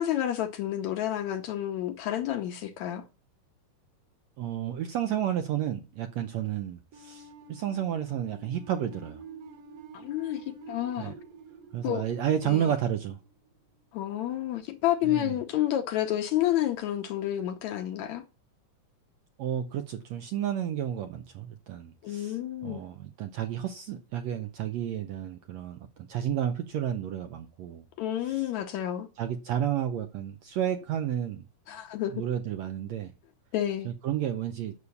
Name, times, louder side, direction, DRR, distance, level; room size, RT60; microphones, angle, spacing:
voice 1, 0.0-3.0 9.9-11.1 11.8-12.0 12.4-12.7 13.9-18.2 22.0-22.8 28.0-29.1 31.7-32.2 33.5-33.9, left 12 dB, 70° left, 1.9 m, -30 dB
voice 2, 4.4-9.2 11.0-11.1 11.7-13.2 15.0-15.4 19.4-27.8 28.2-28.4 29.2-31.4 32.1-33.1 33.8-34.7, right 10 dB, 75° right, 1.6 m, -31 dB
sound 1, 6.9-13.8, right 3 dB, 55° right, 2.3 m, -49 dB
9.6 x 6.7 x 7.0 m
omnidirectional pair, 3.9 m